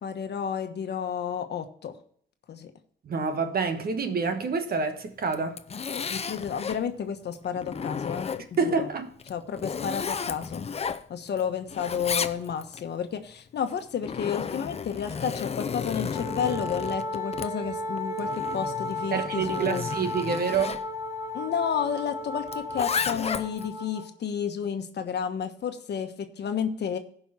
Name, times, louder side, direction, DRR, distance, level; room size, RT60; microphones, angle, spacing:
voice 1, 0.0-1.9 2.5-2.7 5.9-8.3 8.6-8.9 9.3-10.6 11.1-19.9 21.3-27.0, left 7 dB, 60° left, 1.2 m, -31 dB
voice 2, 3.1-5.6 8.6-9.1 19.1-20.8, right 5 dB, 50° right, 1.4 m, -27 dB
Zipper (clothing), 5.2-6.8 7.3-8.7 9.2-11.4 11.7-12.8 13.7-20.8 22.5-23.7, left 6 dB, 30° left, 0.6 m, -33 dB
Wind instrument woodwind instrument, 16.1-24.1, left 1 dB, 20° right, 2.9 m, -34 dB
15.5 x 5.5 x 4.3 m
cardioid pair, 90°, 20 cm